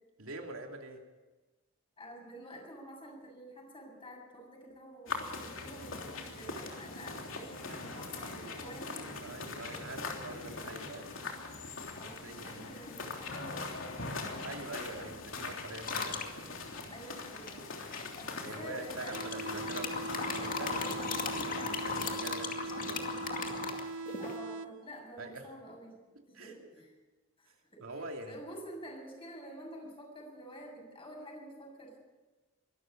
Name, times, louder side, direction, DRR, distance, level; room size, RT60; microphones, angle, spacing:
voice 1, 0.2-1.0 7.7-11.1 12.0-12.8 14.4-16.5 18.4-21.2 21.7-23.1 25.2-25.5 26.3-26.5 27.8-28.4, right 2 dB, 85° right, 2 dB, 2.9 m, -45 dB
voice 2, 2.0-9.3 11.9-15.1 16.9-17.6 18.1-19.3 22.2-22.5 24.2-26.9 27.4-32.0, equal, 25° left, 1 dB, 7.0 m, -49 dB
sound 1, 5.1-22.2, left 3 dB, 70° left, 3.3 m, -42 dB
sound 2, 15.8-16.3 17.5-18.2 19.0-24.4, left 4 dB, 45° left, 2.3 m, -37 dB
sound 3, 19.1-25.1, right 3 dB, 70° right, 0.6 m, -41 dB
23.5 x 13.0 x 8.7 m, 1.2 s
head